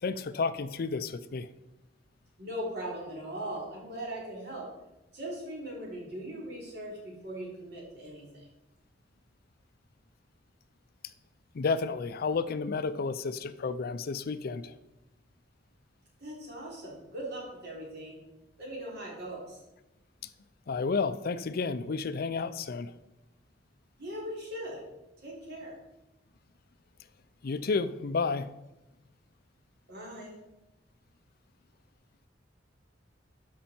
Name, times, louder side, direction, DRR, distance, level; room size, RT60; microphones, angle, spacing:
voice 1, 0.0-1.5 11.5-14.8 20.2-20.3 20.7-22.9 27.4-28.5, left 4 dB, 55° left, 13 dB, 0.5 m, -31 dB
voice 2, 2.4-4.7 5.1-8.5 16.2-18.2 18.6-19.6 24.0-24.9 25.2-25.8 29.9-30.3, right 1 dB, 60° right, -3 dB, 3.5 m, -40 dB
12.5 x 5.5 x 4.4 m, 0.97 s
head